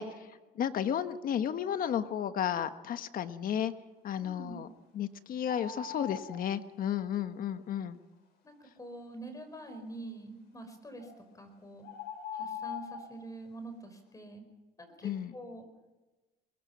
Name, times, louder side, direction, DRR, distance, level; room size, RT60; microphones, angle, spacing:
voice 1, 0.0-3.7 4.0-4.7 4.9-8.0 15.0-15.3, left 9 dB, 55° left, 10 dB, 1.3 m, -33 dB
voice 2, 4.2-4.6 8.4-11.9 12.3-14.4 14.8-15.6, right 2 dB, 20° left, 8 dB, 5.0 m, -46 dB
sound 1, 5.5-6.4 11.0-11.1 11.8-13.1, left 7 dB, 75° left, 7.3 m, -41 dB
23.5 x 20.5 x 6.0 m, 1.2 s
cardioid pair, 110°, 17 cm